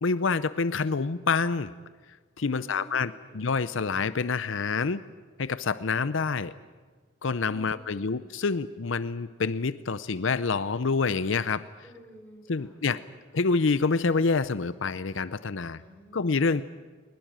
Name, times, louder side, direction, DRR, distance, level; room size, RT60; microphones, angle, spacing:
voice 1, 0.0-1.7 2.4-5.0 5.4-6.5 7.2-11.6 12.5-13.0 13.3-15.8 16.1-16.6, left 4 dB, 70° left, 14 dB, 0.7 m, -27 dB
voice 2, 2.5-3.5 7.5-8.2 11.8-13.0 15.8-16.3, equal, 10° left, 0 dB, 5.4 m, -51 dB
21.5 x 20.5 x 8.9 m, 1.5 s
head